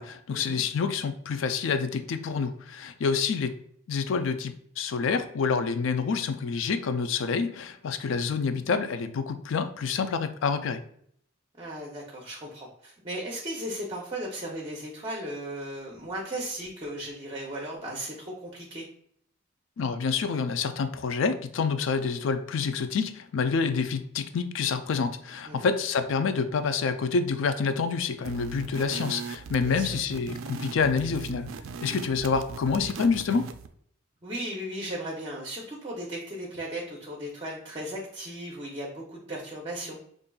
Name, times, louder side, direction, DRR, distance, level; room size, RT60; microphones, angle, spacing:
voice 1, 0.0-3.6 3.9-10.8 19.8-31.5 31.8-33.5, left 5 dB, 70° left, 10 dB, 0.4 m, -27 dB
voice 2, 11.6-18.8 25.5-25.7 29.6-30.0 34.2-40.0, right 1 dB, 25° right, -2 dB, 0.6 m, -36 dB
sound 1, 28.2-33.7, right 5 dB, 80° right, 0.4 m, -38 dB
5.2 x 2.5 x 2.3 m, 0.66 s
head